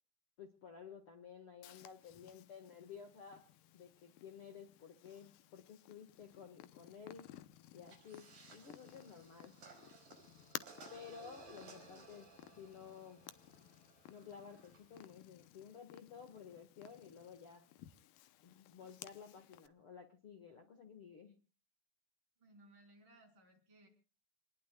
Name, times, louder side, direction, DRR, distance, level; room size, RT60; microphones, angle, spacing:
voice 1, 0.4-3.4 3.7-7.3 7.7-9.5 10.9-12.3 12.6-13.2 14.1-17.6 18.4-21.4, left 7 dB, 60° left, 6 dB, 1.4 m, -54 dB
Purr, 1.6-19.7, left 14 dB, 85° left, 1.9 m, -57 dB
sound 1, 7.9-15.0, right 4 dB, 45° right, 6.0 m, -60 dB
voice 2, 22.4-23.9, right 1 dB, 30° right, 3 dB, 4.1 m, -63 dB
28.0 x 20.5 x 2.3 m, 0.36 s
omnidirectional pair, 5.1 m